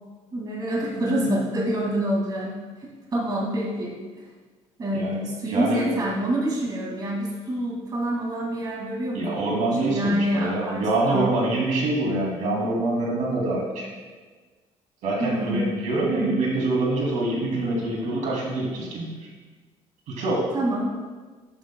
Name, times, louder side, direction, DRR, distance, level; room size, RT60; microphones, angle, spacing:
voice 1, 0.3-2.5 2.8-4.0 4.8-9.5 9.9-11.3 15.2-15.7 20.5-20.9, right 1 dB, 30° right, -3 dB, 2.2 m, -27 dB
voice 2, 5.5-5.9 9.1-13.9 15.0-19.1 20.1-20.5, right 2 dB, 90° right, -3 dB, 2.6 m, -25 dB
12.0 x 8.9 x 2.3 m, 1.4 s
cardioid pair, 140°, 12 cm